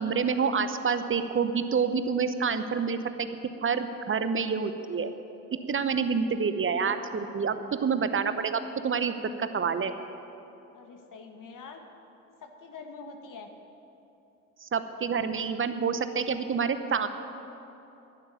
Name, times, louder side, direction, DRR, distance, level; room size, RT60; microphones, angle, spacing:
voice 1, 0.0-3.3 3.6-5.1 5.7-9.9 14.6-17.1, right 6 dB, 30° right, 10 dB, 0.9 m, -28 dB
voice 2, 10.7-11.8 12.4-13.5, left 4 dB, 45° left, 5 dB, 1.8 m, -45 dB
11.5 x 11.5 x 8.9 m, 3.0 s
hypercardioid pair, 60°, 44 cm